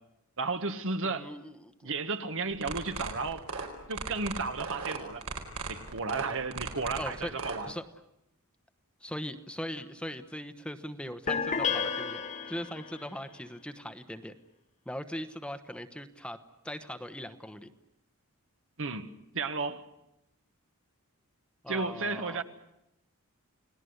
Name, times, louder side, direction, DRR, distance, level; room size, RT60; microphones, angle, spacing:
voice 1, 0.4-1.3 1.8-3.5 3.9-5.2 5.7-7.7 18.8-19.8 21.7-22.4, right 4 dB, 65° right, 1.6 m, -33 dB
voice 2, 1.0-1.9 6.9-7.3 7.7-7.8 9.0-12.2 12.5-14.3 14.9-17.7 21.6-22.4, equal, 5° left, 1.0 m, -40 dB
sound 1, 2.5-7.6, right 4 dB, 80° right, 4.3 m, -36 dB
sound 2, 11.3-13.0, left 6 dB, 35° left, 1.7 m, -31 dB
30.0 x 19.0 x 8.0 m
head